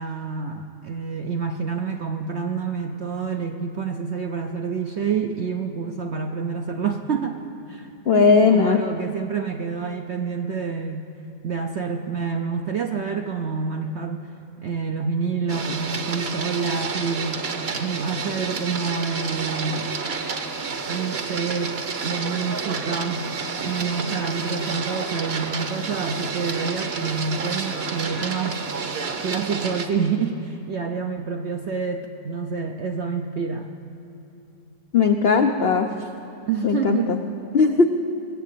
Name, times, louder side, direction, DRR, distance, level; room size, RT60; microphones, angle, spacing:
voice 1, 0.0-7.4 7.7-11.1 11.4-14.3 14.6-19.9 20.9-21.8 22.0-23.3 23.6-28.6 29.2-33.7 36.5-37.2, right 5 dB, 65° right, 4 dB, 0.6 m, -28 dB
voice 2, 8.1-8.8 34.9-35.9 36.6-37.2 37.5-37.9, left 5 dB, 75° left, 5 dB, 0.5 m, -18 dB
Printer, 15.5-29.9, right 5 dB, 45° right, 0.9 m, -30 dB
20.0 x 7.6 x 8.3 m, 2.8 s
omnidirectional pair, 1.9 m